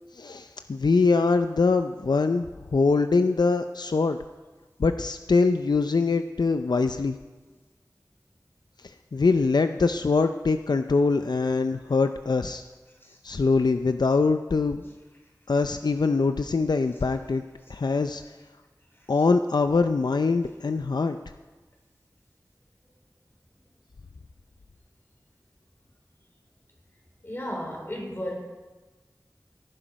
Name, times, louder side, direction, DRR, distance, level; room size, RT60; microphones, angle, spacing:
voice 1, 0.1-4.2 4.8-7.2 9.1-12.6 13.2-14.8 15.5-17.4 17.7-18.2 19.1-21.2, left 4 dB, 85° left, 8 dB, 0.5 m, -23 dB
voice 2, 27.2-28.3, equal, 35° left, 1 dB, 3.7 m, -34 dB
17.5 x 10.0 x 5.1 m, 1.3 s
wide cardioid pair, 50°, 7 cm